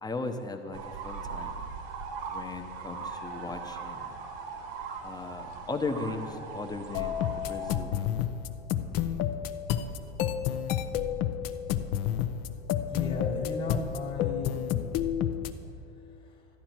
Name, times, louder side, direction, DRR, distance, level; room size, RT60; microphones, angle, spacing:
voice 1, 0.0-1.6 2.3-4.1 5.0-8.2, left 3 dB, 10° left, 5 dB, 0.8 m, -37 dB
sound 1, 0.7-7.8, right 5 dB, 55° right, 1.4 m, -40 dB
sound 2, 6.9-15.5, left 10 dB, 45° left, 0.6 m, -30 dB
voice 2, 12.9-14.9 16.2-16.4, left 3 dB, 30° left, -1 dB, 1.5 m, -35 dB
13.5 x 9.9 x 4.5 m, 2.7 s
hypercardioid pair, 110°, 35 cm